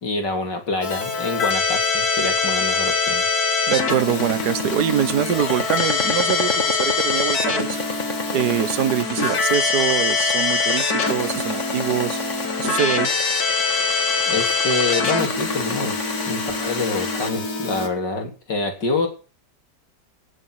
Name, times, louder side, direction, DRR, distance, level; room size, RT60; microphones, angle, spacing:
voice 1, 0.0-3.3 14.3-19.1, left 3 dB, 85° left, 4 dB, 4.3 m, -26 dB
Keyboard (musical), 0.8-17.9, left 4 dB, 60° left, 2.6 m, -24 dB
sound 1, 3.7-17.3, left 3 dB, 45° left, 2.3 m, -31 dB
voice 2, 3.7-7.8 8.3-12.2 12.6-13.1, right 10 dB, 70° right, 14 dB, 1.6 m, -24 dB
17.5 x 7.4 x 8.5 m, 0.37 s
omnidirectional pair, 1.8 m